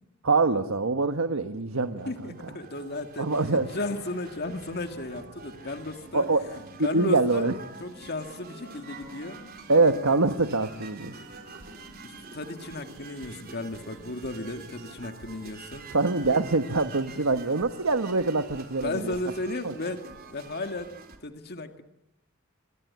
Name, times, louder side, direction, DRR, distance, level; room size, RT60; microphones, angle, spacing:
voice 1, 0.2-2.4 3.2-3.7 6.1-6.4 6.8-7.5 9.7-11.2 15.9-19.1 19.6-19.7, right 3 dB, 75° right, 8 dB, 1.3 m, -24 dB
sound 1, 1.8-21.2, right 4 dB, 45° right, 4.0 m, -47 dB
voice 2, 2.1-6.3 6.8-7.5 7.8-9.4 12.0-15.9 18.8-20.9 21.2-21.8, left 2 dB, 50° left, 6 dB, 2.0 m, -35 dB
sound 2, 3.2-17.2, left 1 dB, 65° left, 5.7 m, -52 dB
28.0 x 22.5 x 9.6 m, 0.84 s
head